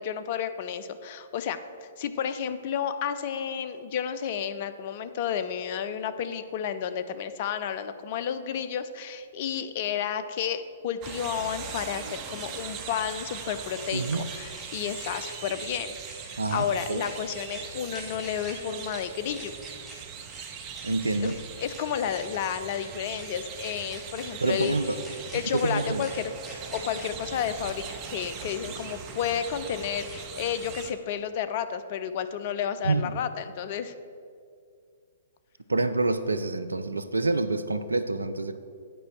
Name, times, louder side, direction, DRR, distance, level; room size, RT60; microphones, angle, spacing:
voice 1, 0.0-16.0 16.2-19.5 21.2-21.3 21.6-25.0 25.3-26.3 26.7-33.9, left 8 dB, 40° left, 11 dB, 0.5 m, -31 dB
sound 1, 9.1-9.2 11.6-13.4 13.8-14.2 14.5-14.7 15.0-15.7 16.0-16.2 16.5-17.1 17.5-17.6 17.9-18.5 18.9-19.0 19.3-20.0 20.3-20.4 20.7-21.4 21.7-21.8 22.1-22.8 23.2-23.3 23.6-24.3 24.6-24.7 25.0-25.6 26.0-26.1 26.4-27.1, left 1 dB, 5° left, 1.8 m, -47 dB
sound 2, 11.0-30.9, right 7 dB, 30° right, 0.7 m, -40 dB
voice 2, 13.9-14.3 16.4-17.0 20.8-21.4 24.4-25.0 25.5-26.0 32.8-33.1 35.7-38.6, right 3 dB, 80° right, 11 dB, 0.5 m, -27 dB
8.9 x 5.2 x 6.1 m, 2.2 s
figure-of-eight pair, 115°, 0 cm